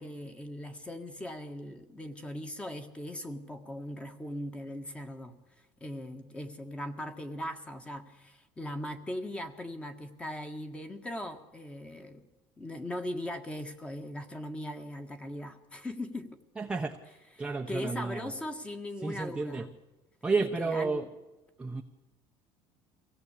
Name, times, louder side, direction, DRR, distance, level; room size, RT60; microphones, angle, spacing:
voice 1, 0.0-5.3 5.8-12.2 12.6-16.4 17.4-19.7 20.4-21.1, left 1 dB, 10° left, 7 dB, 1.7 m, -39 dB
voice 2, 16.6-17.0 17.4-18.3 19.0-19.7 20.2-21.1 21.6-21.8, right 4 dB, 10° right, 2 dB, 1.0 m, -31 dB
24.0 x 17.0 x 8.5 m, 1.1 s
cardioid pair, 165°, 10 cm